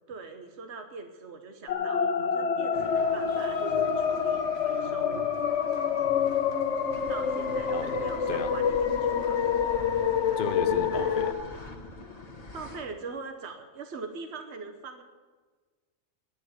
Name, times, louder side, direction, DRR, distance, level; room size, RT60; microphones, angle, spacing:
voice 1, 0.1-5.3 7.1-9.6 10.9-11.2 12.5-15.0, right 4 dB, 65° right, 5 dB, 1.4 m, -42 dB
sound 1, 1.7-11.3, left 7 dB, 75° left, 1.1 m, -27 dB
sound 2, 2.7-11.3, right 4 dB, 85° right, 1.4 m, -45 dB
sound 3, 6.9-12.9, left 3 dB, 35° left, 1.4 m, -44 dB
voice 2, 7.7-8.5 10.4-11.7, left 7 dB, 55° left, 12 dB, 0.8 m, -36 dB
10.5 x 9.4 x 9.4 m, 1.4 s
omnidirectional pair, 1.2 m